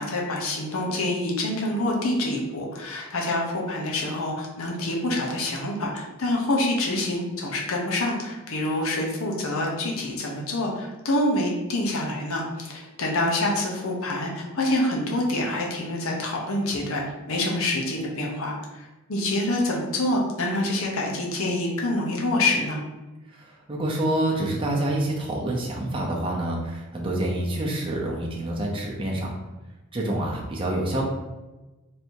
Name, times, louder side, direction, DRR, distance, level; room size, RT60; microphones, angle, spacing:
voice 1, 0.0-22.8, left 1 dB, 75° left, -1 dB, 0.9 m, -26 dB
voice 2, 23.3-29.3 29.9-31.0, right 1 dB, 25° right, -2 dB, 0.6 m, -27 dB
3.3 x 2.7 x 4.4 m, 1.1 s
head